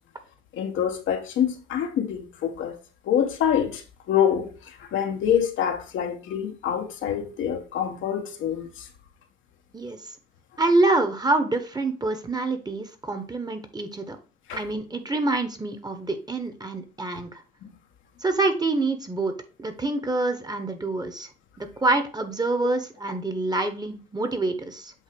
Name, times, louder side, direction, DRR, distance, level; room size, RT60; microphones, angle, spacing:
voice 1, 0.6-2.8 3.1-3.8 4.1-4.5 4.9-8.7 14.5-14.6, left 9 dB, 80° left, 1.2 m, -25 dB
voice 2, 10.6-14.2 14.5-17.4 18.2-19.3 19.6-21.3 21.6-24.9, right 2 dB, 20° right, 1.2 m, -26 dB
8.0 x 2.8 x 4.6 m
cardioid pair, 90°, 20 cm